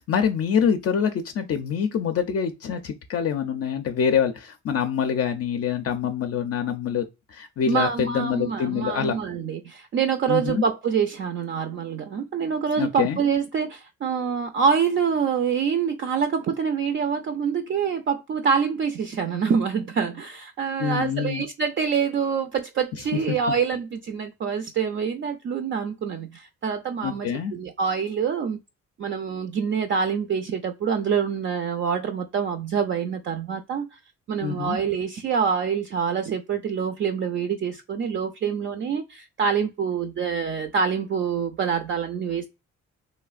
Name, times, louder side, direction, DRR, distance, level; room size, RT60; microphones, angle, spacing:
voice 1, 0.0-9.1 10.3-10.6 12.8-13.2 20.8-21.4 27.0-27.5 34.4-34.8, left 7 dB, 50° left, 0.5 m, -25 dB
voice 2, 7.7-28.6 29.0-34.0 34.3-42.5, right 6 dB, 40° right, 0.4 m, -26 dB
3.1 x 2.4 x 2.4 m
cardioid pair, 90°, 30 cm